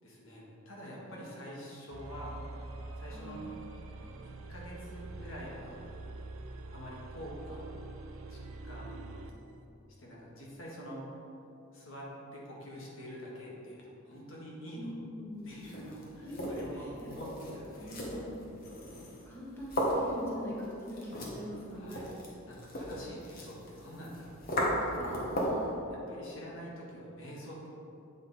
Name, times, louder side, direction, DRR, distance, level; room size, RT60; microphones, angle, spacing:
voice 1, 0.0-2.4 3.0-3.4 4.2-5.9 6.7-7.8 8.3-9.1 10.0-11.1 11.7-12.1 12.3-14.9 15.4-17.3 17.5-18.0 21.7-22.1 22.5-25.2 25.9-27.7, equal, 70° left, -4 dB, 1.6 m, -46 dB
sound 1, 1.9-9.4, right 2 dB, 75° right, 0.5 m, -45 dB
voice 2, 3.1-3.5 14.7-15.6 16.1-17.1 17.8-18.6 19.2-22.2 25.0-25.7, equal, 10° left, -7 dB, 1.4 m, -43 dB
sound 2, 15.5-25.7, equal, 45° left, 1.3 m, -36 dB
8.1 x 5.3 x 4.1 m, 2.8 s
head